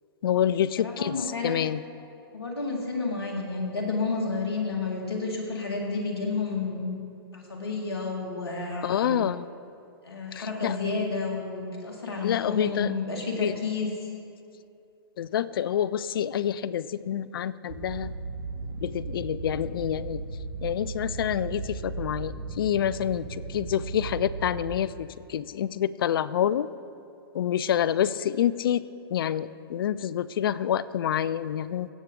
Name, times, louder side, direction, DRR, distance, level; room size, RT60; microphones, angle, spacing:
voice 1, 0.2-1.8 8.8-9.5 10.3-10.8 12.2-12.9 13.4-13.6 15.2-18.1 18.8-20.2 20.6-26.7 27.3-28.9 29.1-31.9, left 10 dB, 65° left, 17 dB, 0.4 m, -27 dB
voice 2, 0.8-1.6 2.3-7.0 7.3-9.2 10.0-13.9, left 3 dB, 85° left, 0 dB, 2.0 m, -31 dB
sound 1, 17.7-24.8, right 4 dB, 65° right, 0.9 m, -36 dB
16.5 x 7.3 x 3.7 m, 2.6 s
hypercardioid pair, 125°, 13 cm